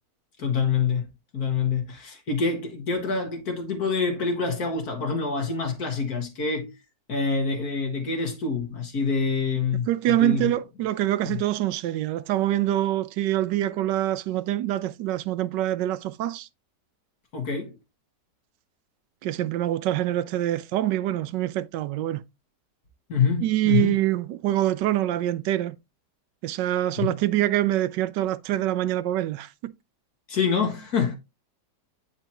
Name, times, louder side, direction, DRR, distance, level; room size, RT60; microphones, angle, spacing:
voice 1, 0.4-1.1 1.3-6.7 7.1-10.5 11.2-11.4 17.3-17.8 23.1-23.9 27.0-27.1 30.3-31.2, left 5 dB, 60° left, 1.9 m, -26 dB
voice 2, 9.9-16.5 19.2-22.2 23.4-25.8 26.4-29.7, right 14 dB, 85° right, 1.2 m, -25 dB
9.0 x 4.5 x 2.9 m
omnidirectional pair, 1.9 m